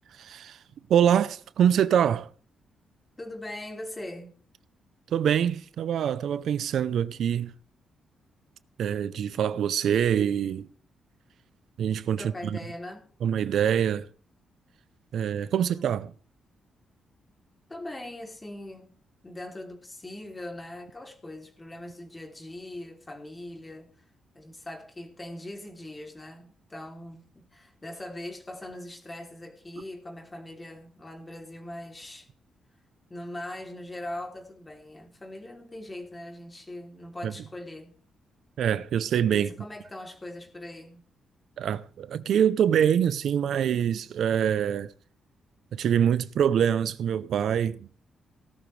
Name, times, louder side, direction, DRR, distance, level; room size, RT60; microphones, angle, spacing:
voice 1, 0.1-0.6 0.9-2.3 5.1-7.5 8.8-10.7 11.8-12.6 13.2-14.1 15.1-16.1 37.2-37.3 38.6-39.5 41.6-44.9 45.7-47.9, right 9 dB, 75° right, 0.6 m, -25 dB
voice 2, 3.2-4.3 12.2-13.0 15.5-16.1 17.7-18.9 19.2-23.9 24.3-32.3 33.1-37.9 39.4-41.0, left 1 dB, 20° left, 3.0 m, -41 dB
17.5 x 12.0 x 3.3 m
cardioid pair, 105°, 0 cm